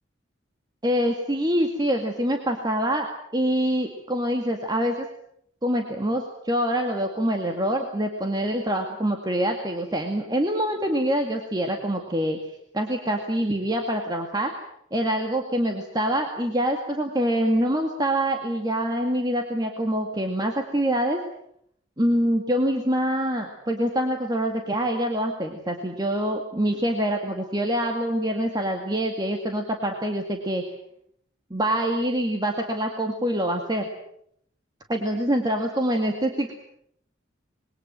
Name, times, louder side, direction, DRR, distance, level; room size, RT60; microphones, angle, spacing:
voice 1, 0.8-5.0 5.6-12.4 12.7-14.5 14.9-21.2 22.0-30.7 31.5-33.9 34.9-36.5, equal, 20° right, 3 dB, 2.2 m, -25 dB
26.0 x 22.5 x 7.6 m, 0.71 s
head